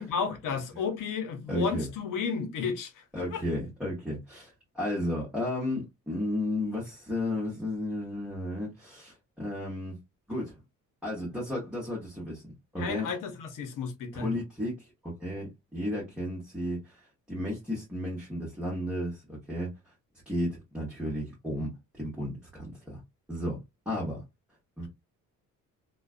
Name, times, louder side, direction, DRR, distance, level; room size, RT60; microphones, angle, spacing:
voice 1, 0.0-3.0 3.3-3.4 12.8-14.3, left 5 dB, 70° left, 0.8 m, -32 dB
voice 2, 1.5-1.9 3.1-9.9 10.3-10.5 11.0-12.4 12.7-13.1 14.1-17.0 17.3-19.7 20.3-23.0 23.3-23.6 23.9-24.2 24.8-24.9, left 1 dB, 5° right, 1.0 m, -33 dB
2.4 x 2.2 x 2.4 m
cardioid pair, 120°, 33 cm